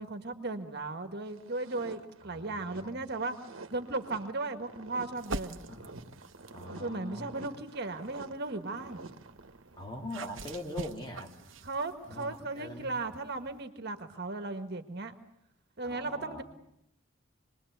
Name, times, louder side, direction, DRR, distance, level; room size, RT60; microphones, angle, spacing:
voice 1, 0.0-3.3 3.7-5.6 6.7-9.1 11.6-15.1 15.8-16.4, right 3 dB, 55° right, 7 dB, 1.7 m, -36 dB
sound 1, 1.3-9.9, right 3 dB, 85° right, 1.5 m, -50 dB
voice 2, 2.2-3.0 5.6-6.2 6.5-7.5 9.8-11.3 12.1-12.9 15.8-16.4, left 1 dB, 25° left, 1 dB, 3.4 m, -43 dB
sound 2, 5.1-6.7 7.4-13.6, right 3 dB, 70° right, 1.1 m, -46 dB
27.0 x 21.5 x 8.1 m, 0.78 s
head